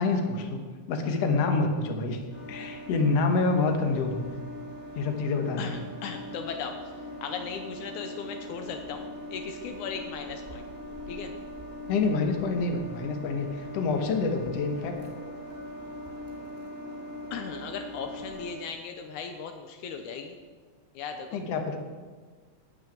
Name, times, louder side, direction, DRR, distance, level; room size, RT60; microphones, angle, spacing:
voice 1, 0.0-2.2 2.5-4.3 5.0-5.8 11.9-15.0 21.3-21.8, left 3 dB, 60° left, 4 dB, 2.2 m, -27 dB
sound 1, 2.3-18.5, left 1 dB, 5° right, 2.5 m, -41 dB
voice 2, 5.6-6.8 7.2-10.7 11.1-11.3 17.3-20.4 21.0-21.4, left 6 dB, 80° left, 5 dB, 2.2 m, -37 dB
13.0 x 5.8 x 9.0 m, 1.5 s
omnidirectional pair, 3.5 m